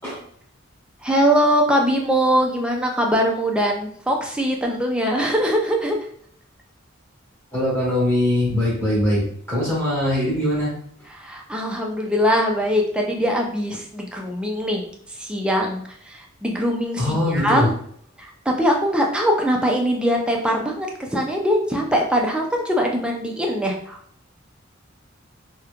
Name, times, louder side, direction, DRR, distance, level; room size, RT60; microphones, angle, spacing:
voice 1, 1.0-6.0 11.2-17.1 17.3-17.7 18.2-24.0, equal, 5° right, 0 dB, 0.4 m, -22 dB
voice 2, 7.5-10.7 17.0-17.7, left 1 dB, 10° left, -9 dB, 1.3 m, -21 dB
2.9 x 2.1 x 2.4 m, 0.63 s
head